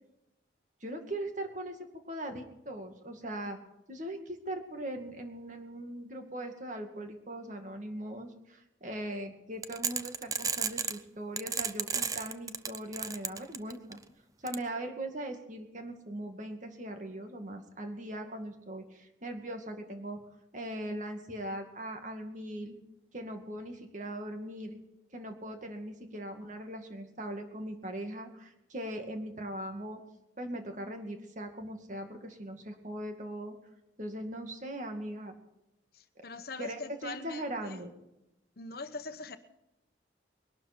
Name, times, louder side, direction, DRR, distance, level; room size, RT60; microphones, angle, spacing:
voice 1, 0.8-1.8 2.1-3.6 3.9-14.0 14.4-20.2 20.5-22.8 23.1-24.8 25.1-30.0 30.4-33.5 34.0-35.3 36.6-37.9, right 1 dB, 40° right, 5 dB, 2.2 m, -40 dB
sound 1, 9.6-11.0 11.4-13.9 14.5-14.6, right 6 dB, 20° right, 0.6 m, -32 dB
voice 2, 35.9-37.9 38.6-39.4, left 3 dB, 55° left, 9 dB, 1.1 m, -42 dB
21.5 x 12.0 x 4.4 m, 0.89 s
head